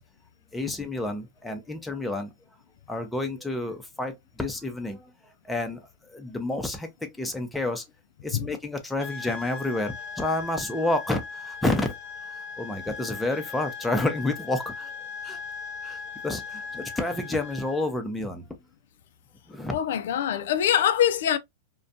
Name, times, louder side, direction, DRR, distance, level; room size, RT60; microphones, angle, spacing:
voice 1, 0.5-2.3 2.9-5.1 5.4-7.8 8.2-11.9 12.2-14.9 15.2-15.4 15.8-18.4 19.5-19.8, left 2 dB, 5° left, 0.6 m, -30 dB
sound 1, 9.0-17.9, left 5 dB, 40° left, 0.8 m, -39 dB
voice 2, 19.7-21.4, left 10 dB, 70° left, 0.3 m, -23 dB
2.4 x 2.2 x 2.5 m
hypercardioid pair, 130°, 0 cm